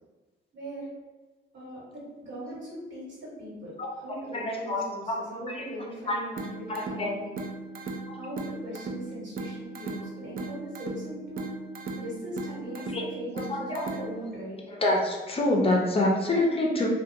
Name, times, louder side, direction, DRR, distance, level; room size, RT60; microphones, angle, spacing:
voice 1, 0.5-0.9 1.5-7.4 8.1-11.5 12.0-14.6, equal, 65° right, -6 dB, 1.4 m, -39 dB
voice 2, 4.3-4.8 5.1-5.2 5.5-5.6 6.1-6.2 6.7-7.1 8.1-8.2 12.9-13.0 13.5-13.8 14.8-16.9, left 1 dB, 30° left, -1 dB, 0.5 m, -26 dB
sound 1, 6.4-14.4, right 3 dB, 50° right, 0.4 m, -38 dB
2.4 x 2.2 x 2.7 m, 1.2 s
cardioid pair, 90°, 20 cm